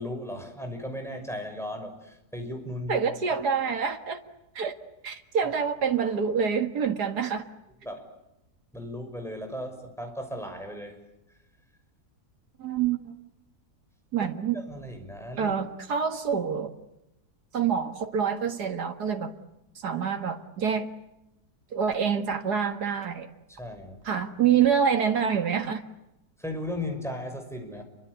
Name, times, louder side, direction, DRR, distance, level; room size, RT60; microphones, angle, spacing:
voice 1, 0.0-3.0 3.3-3.4 7.8-8.1 8.7-11.0 14.2-15.6 23.5-24.0 26.4-27.8, left 1 dB, ahead, 4 dB, 6.1 m, -36 dB
voice 2, 2.9-4.2 4.6-4.7 5.0-7.5 12.6-13.1 14.1-14.6 15.4-16.7 17.5-19.3 19.8-20.9 21.7-23.3 24.1-25.8, right 7 dB, 85° right, 6 dB, 2.3 m, -26 dB
29.0 x 24.5 x 8.2 m, 0.91 s
omnidirectional pair, 1.7 m